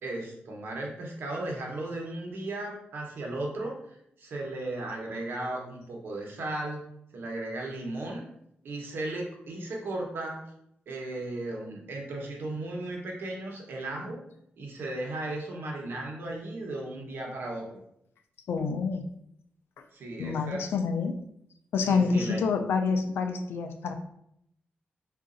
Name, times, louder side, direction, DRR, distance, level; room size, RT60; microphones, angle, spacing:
voice 1, 0.0-6.8 7.1-8.2 8.6-10.4 10.9-14.2 14.6-17.8 19.9-20.6 21.9-22.4, right 2 dB, 70° right, -1 dB, 0.9 m, -36 dB
voice 2, 18.5-19.0 20.2-21.2 21.7-23.9, left 5 dB, 90° left, 6 dB, 0.4 m, -27 dB
4.7 x 2.5 x 2.5 m, 0.75 s
wide cardioid pair, 110°, 4 cm